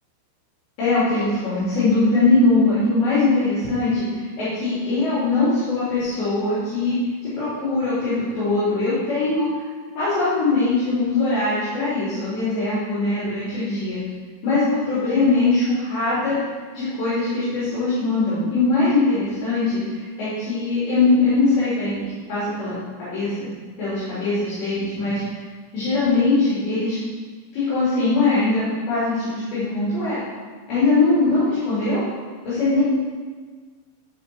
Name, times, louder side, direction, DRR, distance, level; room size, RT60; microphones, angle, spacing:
voice 1, 0.8-7.0 7.4-9.5 10.0-14.0 14.4-16.4 16.8-23.5 23.8-25.2 25.7-27.0 27.5-30.2 30.7-32.0 32.4-32.8, left 3 dB, 60° left, -13 dB, 5.2 m, -21 dB
13.0 x 5.0 x 4.7 m, 1.5 s
omnidirectional pair, 5.9 m